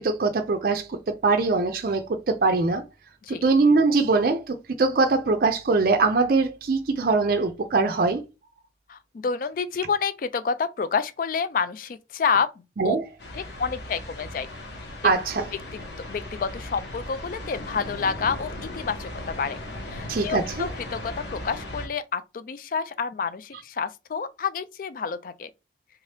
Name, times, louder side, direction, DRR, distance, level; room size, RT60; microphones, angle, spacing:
voice 1, 0.0-2.8 3.3-8.2 12.8-13.0 15.0-15.4 20.1-20.7, right 3 dB, 50° right, 0.4 m, -22 dB
voice 2, 8.9-12.5 12.8-13.0 13.3-14.5 15.4-15.6 16.1-19.6 19.9-25.5, left 5 dB, 45° left, 0.3 m, -29 dB
sound 1, 13.2-21.9, left 1 dB, 65° left, 1.0 m, -37 dB
3.5 x 2.8 x 3.2 m
head